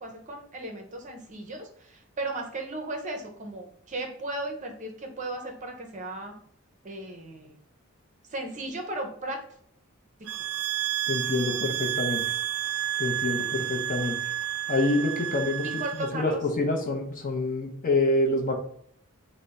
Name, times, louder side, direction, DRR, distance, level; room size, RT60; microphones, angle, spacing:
voice 1, 0.0-6.3 6.8-7.6 8.3-9.4 15.6-16.4, right 2 dB, 35° right, 3 dB, 0.6 m, -36 dB
sound 1, 10.3-16.1, right 12 dB, 75° right, 0.3 m, -30 dB
voice 2, 11.1-12.4 13.0-14.2 14.7-18.6, left 2 dB, 40° left, 3 dB, 0.6 m, -27 dB
3.4 x 2.1 x 4.0 m, 0.64 s
head